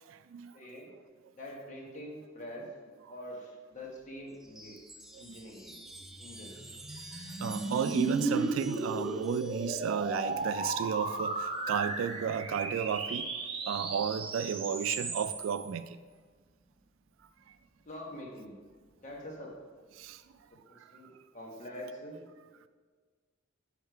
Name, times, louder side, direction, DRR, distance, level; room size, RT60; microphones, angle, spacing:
voice 1, 0.5-0.9 1.3-2.7 3.1-4.8 5.1-5.7 6.2-6.6 17.9-18.6 19.0-19.5 20.5-22.2, equal, 40° left, -1 dB, 1.2 m, -45 dB
Chime, 4.3-12.1 13.4-14.0, right 2 dB, ahead, 0.4 m, -51 dB
sound 1, 5.9-15.6, right 2 dB, 30° right, 0.9 m, -35 dB
voice 2, 7.4-13.3 13.7-15.9 20.0-20.2, right 7 dB, 80° right, 11 dB, 0.3 m, -33 dB
6.6 x 5.4 x 4.6 m, 1.5 s
head